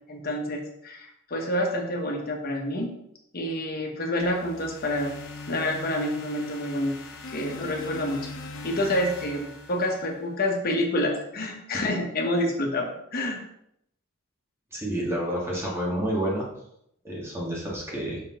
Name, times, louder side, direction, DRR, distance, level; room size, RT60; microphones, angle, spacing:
voice 1, 0.1-2.9 3.3-5.1 5.5-6.9 7.3-8.2 8.6-13.4, left 1 dB, 50° left, 1 dB, 1.2 m, -28 dB
sound 1, 4.2-10.4, left 3 dB, 65° left, 0.9 m, -40 dB
voice 2, 14.7-16.5 17.0-18.2, right 1 dB, 15° right, -4 dB, 1.7 m, -29 dB
5.7 x 5.1 x 3.7 m, 0.75 s
head